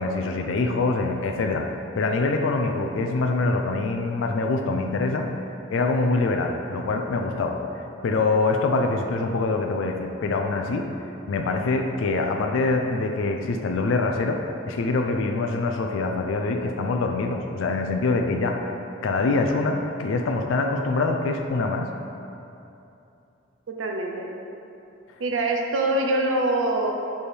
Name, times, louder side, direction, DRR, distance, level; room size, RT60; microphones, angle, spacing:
voice 1, 0.0-5.3 5.7-7.6 8.0-10.9 11.3-18.8 19.0-21.9, left 3 dB, 75° left, 4 dB, 0.4 m, -24 dB
voice 2, 23.7-24.3 25.2-26.9, right 2 dB, 75° right, 1 dB, 0.6 m, -24 dB
6.9 x 3.3 x 4.4 m, 2.8 s
head